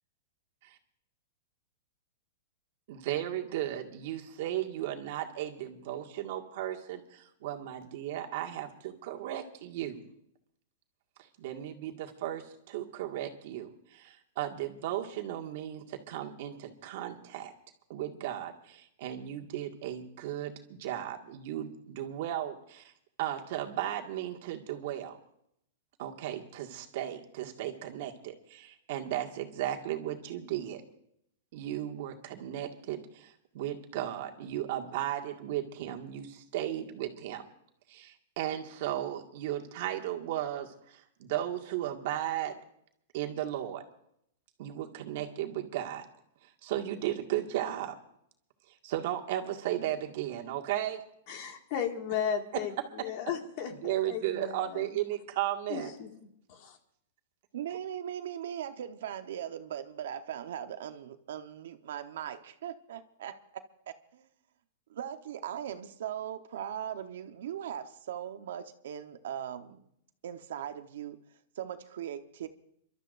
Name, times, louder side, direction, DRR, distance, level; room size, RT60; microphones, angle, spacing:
voice 1, 2.9-10.0 11.4-17.5 17.9-22.9 23.2-25.2 26.0-30.8 31.5-37.4 37.9-42.5 43.1-43.8 44.6-46.1 46.6-48.0 48.8-51.0 53.0-53.1 53.8-55.9, right 12 dB, 55° right, 3 dB, 1.8 m, -35 dB
voice 2, 51.3-55.0 55.7-56.1 56.5-56.8, left 8 dB, 45° left, 4 dB, 2.0 m, -35 dB
voice 3, 57.5-63.4 64.1-64.3 64.9-69.8 70.2-71.2 71.6-72.5, right 10 dB, 70° right, 8 dB, 1.0 m, -39 dB
29.5 x 12.5 x 2.6 m, 0.70 s
hypercardioid pair, 155°, 0 cm